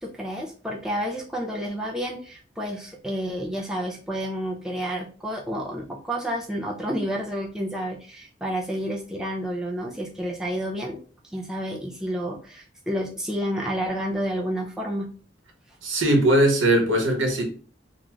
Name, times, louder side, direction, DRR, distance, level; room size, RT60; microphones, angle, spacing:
voice 1, 0.0-11.0 11.3-15.1, equal, 5° right, 0.4 m, -30 dB
voice 2, 15.8-17.4, right 1 dB, 85° right, 0.9 m, -20 dB
2.5 x 2.3 x 3.0 m
head